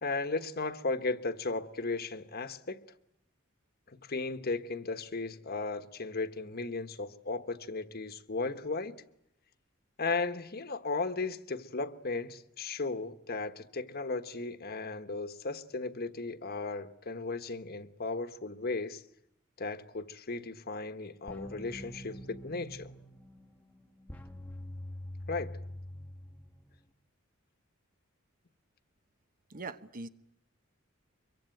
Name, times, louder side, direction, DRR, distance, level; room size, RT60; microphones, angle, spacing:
voice 1, 0.0-2.8 3.9-8.9 10.0-19.0 19.6-22.9 25.3-25.5, left 3 dB, 50° left, 1.3 m, -36 dB
sound 1, 21.3-26.9, left 1 dB, 10° left, 1.2 m, -45 dB
voice 2, 29.5-30.1, right 3 dB, 45° right, 1.1 m, -41 dB
24.0 x 23.5 x 9.2 m
head